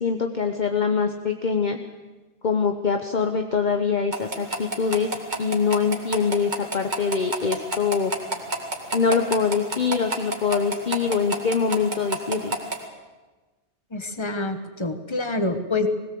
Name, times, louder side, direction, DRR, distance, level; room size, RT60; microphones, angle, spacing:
voice 1, 0.0-1.8 2.4-8.1 8.9-12.6, left 5 dB, 40° left, 6 dB, 1.1 m, -24 dB
sound 1, 4.1-12.8, right 2 dB, 40° right, 2.2 m, -31 dB
voice 2, 13.9-15.9, left 2 dB, 25° left, 8 dB, 1.4 m, -27 dB
20.0 x 17.5 x 7.7 m, 1.2 s
omnidirectional pair, 1.2 m